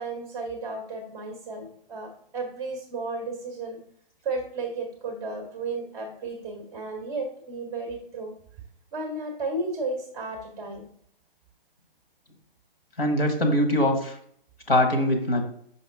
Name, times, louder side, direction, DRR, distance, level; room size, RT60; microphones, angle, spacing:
voice 1, 0.0-3.8 4.2-8.3 8.9-10.9, right 3 dB, 10° right, 4 dB, 0.5 m, -33 dB
voice 2, 13.0-14.1 14.7-15.5, left 1 dB, 90° left, 4 dB, 1.7 m, -22 dB
5.5 x 5.2 x 3.5 m, 0.65 s
hypercardioid pair, 145°, 29 cm